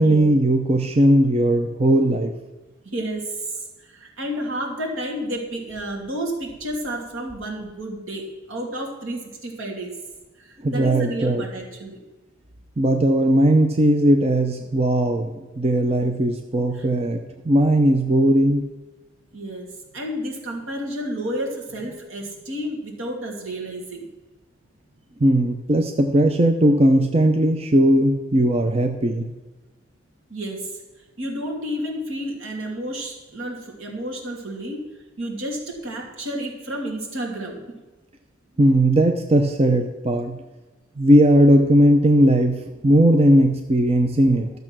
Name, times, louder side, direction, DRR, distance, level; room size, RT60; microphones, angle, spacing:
voice 1, 0.0-2.3 10.6-11.4 12.8-15.3 15.6-18.6 25.2-29.3 38.6-40.4 41.0-44.5, right 1 dB, 30° right, 5 dB, 0.6 m, -18 dB
voice 2, 2.8-10.0 10.4-12.0 16.7-16.8 19.3-24.1 30.3-30.7 31.2-34.9 35.2-37.6, right 1 dB, 75° right, 0 dB, 2.6 m, -31 dB
12.5 x 6.8 x 6.1 m, 1.2 s
head